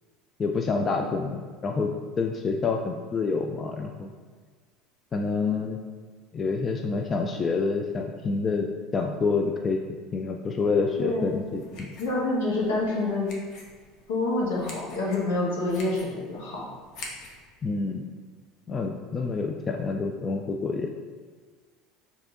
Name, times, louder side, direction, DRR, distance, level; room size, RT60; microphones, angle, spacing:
voice 1, 0.4-4.1 5.1-5.8 6.3-8.7 8.9-9.8 10.1-11.9 17.6-18.1 18.7-20.9, left 4 dB, 35° left, 3 dB, 0.4 m, -27 dB
voice 2, 11.0-11.4 12.0-13.3 14.1-16.6, left 2 dB, 80° left, -5 dB, 1.3 m, -27 dB
sound 1, 11.1-17.4, left 2 dB, 60° left, 0.9 m, -47 dB
4.7 x 2.8 x 3.8 m, 1.5 s
hypercardioid pair, 80°, 0 cm